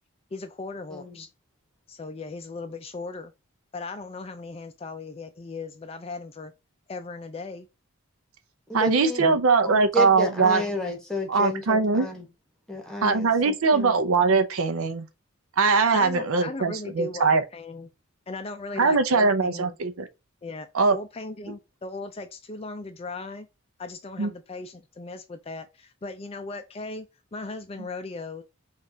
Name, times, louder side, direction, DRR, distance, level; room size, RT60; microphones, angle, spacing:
voice 1, 0.3-1.3 1.9-3.3 3.7-6.5 6.9-7.7 9.2-9.4 15.9-17.9 18.3-19.8 20.4-23.5 23.8-27.1 27.3-28.4, left 3 dB, 25° left, 0.4 m, -37 dB
voice 2, 0.9-1.2 8.7-12.3 12.7-14.0 18.9-19.0, equal, 5° left, 1.1 m, -32 dB
voice 3, 8.7-10.6 11.3-12.1 13.0-15.1 15.6-17.4 18.8-20.1 20.7-21.0 24.2-24.3, right 4 dB, 70° right, 0.6 m, -21 dB
5.2 x 2.5 x 2.7 m
head